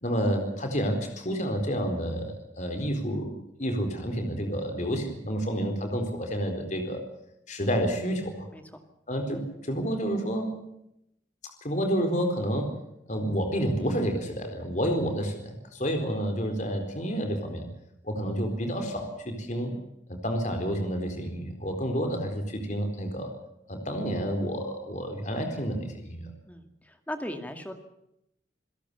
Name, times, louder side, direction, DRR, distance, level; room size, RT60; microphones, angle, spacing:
voice 1, 0.0-7.0 7.5-8.5 9.1-10.5 11.6-12.8 13.1-17.7 18.0-19.7 20.1-23.3 23.7-26.3, equal, 40° left, 4 dB, 4.2 m, -29 dB
voice 2, 26.4-27.7, left 1 dB, 10° left, 6 dB, 2.2 m, -38 dB
28.0 x 17.0 x 7.0 m, 0.80 s
head